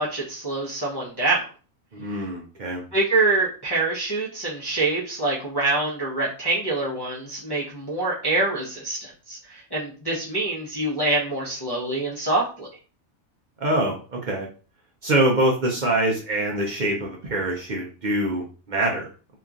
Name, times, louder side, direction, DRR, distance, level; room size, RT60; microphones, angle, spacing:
voice 1, 0.0-1.4 2.1-2.2 2.9-12.7, right 2 dB, 30° left, -7 dB, 0.5 m, -25 dB
voice 2, 1.9-2.8 13.6-14.5 15.0-19.1, right 1 dB, 65° right, -1 dB, 0.4 m, -24 dB
2.9 x 2.4 x 2.3 m, 0.36 s
omnidirectional pair, 1.4 m